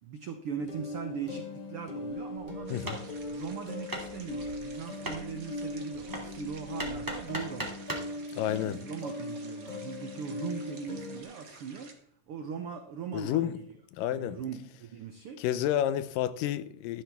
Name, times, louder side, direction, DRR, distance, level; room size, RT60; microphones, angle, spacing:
voice 1, 0.0-7.8 8.5-13.7 14.1-15.4, right 6 dB, 80° right, 1.2 m, -40 dB
sound 1, 0.6-11.2, left 2 dB, 25° left, 0.9 m, -40 dB
Hammer, 2.4-8.2, right 1 dB, 5° right, 1.9 m, -40 dB
sound 2, 2.7-11.9, right 4 dB, 45° right, 1.2 m, -52 dB
voice 2, 8.3-8.8 13.1-13.6 13.9-14.4 15.4-17.0, left 11 dB, 85° left, 2.3 m, -30 dB
13.0 x 12.0 x 3.5 m
omnidirectional pair, 3.8 m